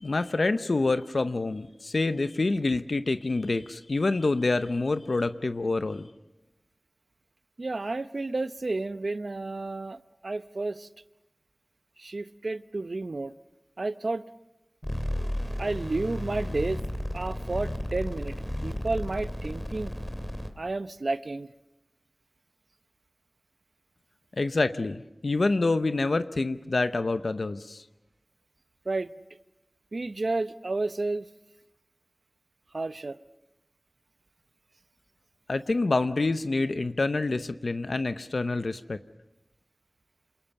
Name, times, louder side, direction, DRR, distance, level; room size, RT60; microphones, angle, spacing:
voice 1, 0.0-6.1 24.4-27.8 35.5-39.0, left 3 dB, 85° left, 11 dB, 0.7 m, -27 dB
voice 2, 7.6-10.9 12.0-13.3 13.8-14.2 15.6-16.8 17.1-19.9 20.6-21.5 28.9-29.1 29.9-31.3 32.7-33.2, right 2 dB, 75° right, 13 dB, 0.8 m, -31 dB
sound 1, 14.8-20.5, left 1 dB, 20° left, 2.9 m, -33 dB
27.5 x 20.5 x 6.9 m, 0.95 s
wide cardioid pair, 45°, 0 cm